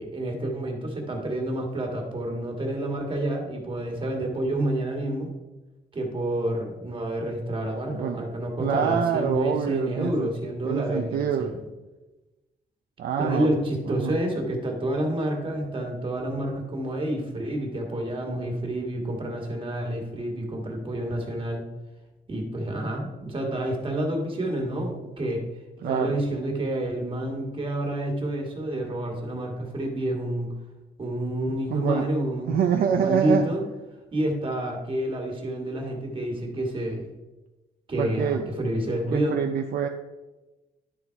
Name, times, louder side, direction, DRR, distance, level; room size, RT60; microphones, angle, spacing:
voice 1, 0.0-5.3 5.9-11.6 13.2-21.6 22.3-25.4 25.8-30.5 31.0-32.6 32.9-33.6 34.1-37.1 37.9-39.4, right 1 dB, 30° right, 1 dB, 1.9 m, -29 dB
voice 2, 7.9-8.3 8.6-10.3 10.6-11.5 13.0-13.5 13.9-14.2 25.8-26.2 31.7-32.1 32.5-33.5 38.0-38.5 39.1-39.9, right 8 dB, 60° right, 4 dB, 0.6 m, -26 dB
11.0 x 4.1 x 4.6 m, 1.1 s
cardioid pair, 125°, 17 cm